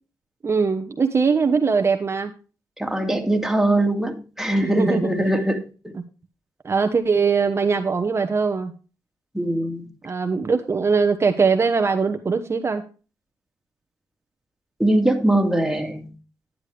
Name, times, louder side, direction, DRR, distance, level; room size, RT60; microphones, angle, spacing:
voice 1, 0.4-2.3 4.6-5.1 6.6-8.7 10.0-12.8, right 5 dB, 35° right, 1.1 m, -21 dB
voice 2, 2.8-5.9 9.3-9.9 14.8-16.1, right 1 dB, 5° right, 2.1 m, -22 dB
10.5 x 9.6 x 3.3 m
cardioid pair, 80°, 7 cm